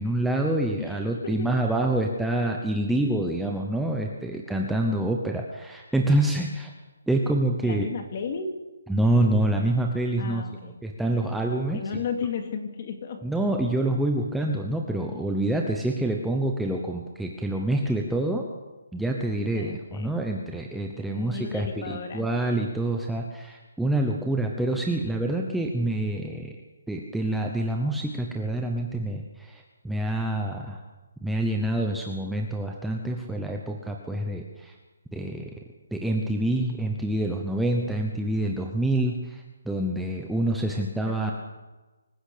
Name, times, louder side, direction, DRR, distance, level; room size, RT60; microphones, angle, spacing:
voice 1, 0.0-6.7 7.1-7.9 8.9-10.4 10.8-11.8 13.2-18.5 18.9-26.5 26.9-30.8 31.2-34.7 35.1-35.5 35.9-41.3, right 1 dB, ahead, 0 dB, 0.8 m, -27 dB
voice 2, 0.8-1.6 3.1-3.2 7.6-8.6 10.2-10.8 11.1-11.5 11.7-13.2 15.1-15.2 19.5-20.2 21.1-22.3 41.1-41.3, left 6 dB, 30° left, 5 dB, 2.4 m, -34 dB
25.5 x 16.0 x 6.7 m, 1.2 s
hypercardioid pair, 175°, 0 cm